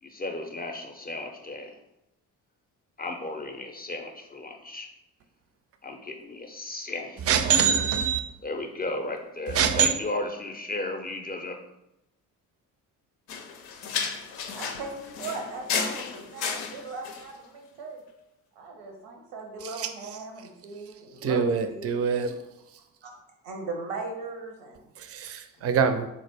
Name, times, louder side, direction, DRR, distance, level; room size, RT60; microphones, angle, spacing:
voice 1, 0.0-1.8 3.0-4.9 5.8-7.2 8.4-11.6, left 2 dB, 20° left, 3 dB, 0.4 m, -34 dB
voice 2, 7.3-8.2 9.5-9.9 19.6-19.9 21.2-22.4 25.0-26.1, right 7 dB, 35° right, 9 dB, 0.4 m, -24 dB
sound 1, 13.3-17.3, left 6 dB, 80° left, 0.5 m, -33 dB
voice 3, 14.5-18.0 18.6-22.5 23.0-23.2 23.4-24.9, right 3 dB, 85° right, 2 dB, 0.7 m, -39 dB
3.6 x 2.0 x 3.4 m, 0.88 s
hypercardioid pair, 45°, 44 cm